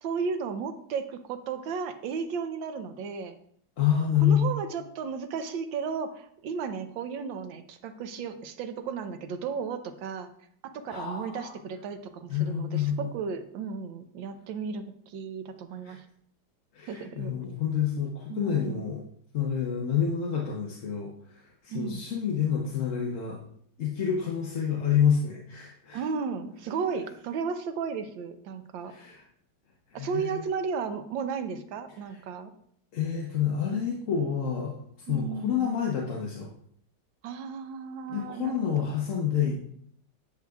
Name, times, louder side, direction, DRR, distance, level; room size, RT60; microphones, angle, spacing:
voice 1, 0.0-3.4 4.2-10.3 10.6-16.0 16.9-17.3 18.3-18.9 21.7-22.0 25.9-28.9 29.9-32.5 35.1-35.7 37.2-38.9, right 5 dB, 80° right, 8 dB, 1.5 m, -34 dB
voice 2, 3.8-4.5 10.9-11.5 12.3-13.1 15.8-16.0 16.7-19.0 19.3-23.4 23.8-26.0 28.9-29.2 29.9-30.4 32.9-34.8 35.1-36.5 38.1-39.7, left 8 dB, 50° left, -1 dB, 1.1 m, -28 dB
10.5 x 6.4 x 2.4 m, 0.65 s
omnidirectional pair, 2.0 m